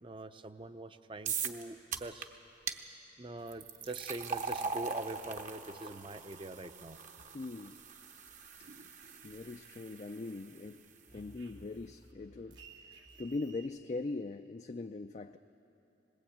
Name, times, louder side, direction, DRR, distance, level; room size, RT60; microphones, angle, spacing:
voice 1, 0.0-2.3 3.2-7.0, right 2 dB, 30° right, 11 dB, 0.6 m, -44 dB
sound 1, 1.3-1.6 1.9-2.3 2.7-2.8 3.5-10.6, right 5 dB, 45° right, 1.0 m, -41 dB
voice 2, 7.3-7.8 9.0-10.8 11.1-15.4, left 3 dB, 40° left, 6 dB, 0.4 m, -41 dB
sound 2, 8.3-10.0 10.3-13.7, right 3 dB, 85° right, 2.3 m, -57 dB
21.0 x 19.0 x 8.6 m, 3.0 s
head